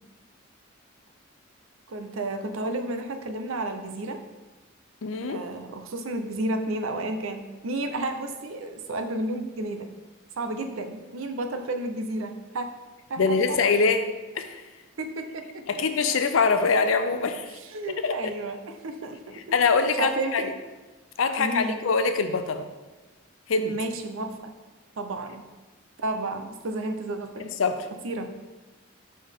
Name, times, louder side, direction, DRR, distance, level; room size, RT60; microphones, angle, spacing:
voice 1, 1.9-4.2 5.3-9.9 10.4-12.7 13.1-13.6 15.0-15.6 17.7-19.4 20.0-20.5 21.3-21.9 23.7-24.5 25.0-25.5 26.0-27.5 28.0-28.3, right 2 dB, 80° right, 7 dB, 0.6 m, -32 dB
voice 2, 5.0-5.4 13.2-14.6 15.7-17.6 17.9-18.3 19.5-20.5 21.2-22.7 23.5-23.8 27.4-27.9, left 4 dB, 75° left, 9 dB, 0.5 m, -24 dB
5.5 x 5.3 x 3.5 m, 1.2 s
head